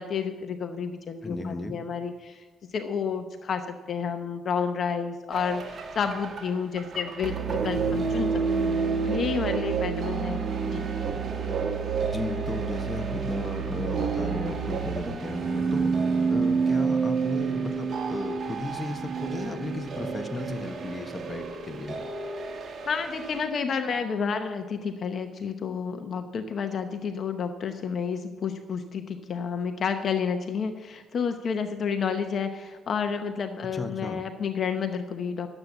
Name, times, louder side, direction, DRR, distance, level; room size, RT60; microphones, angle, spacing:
voice 1, 0.0-2.4 2.7-8.3 8.6-10.4 10.7-10.9 22.9-35.5, left 6 dB, 55° left, 7 dB, 0.8 m, -30 dB
voice 2, 1.2-1.8 12.0-15.9 16.3-22.0 33.6-34.2, left 2 dB, 25° left, 6 dB, 1.2 m, -35 dB
sound 1, 5.3-23.4, right 5 dB, 50° right, 1.5 m, -29 dB
11.5 x 8.0 x 7.1 m, 1.3 s
cardioid pair, 90°, 0 cm